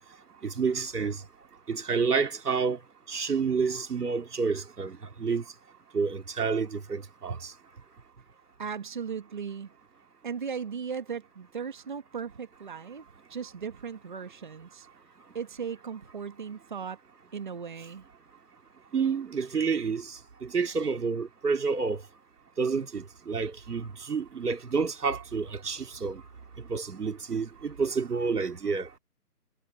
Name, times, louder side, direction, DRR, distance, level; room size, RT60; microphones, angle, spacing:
voice 1, 0.4-1.2 1.7-2.8 3.1-5.4 5.9-7.5 18.9-20.1 20.4-22.0 22.6-26.2 26.7-28.9, right 5 dB, 75° right, 2.5 m, -29 dB
voice 2, 8.6-9.7 10.2-13.0 13.3-14.9 15.3-17.0 17.3-18.0, right 6 dB, 30° right, 1.6 m, -37 dB
hypercardioid pair, 175°, 46 cm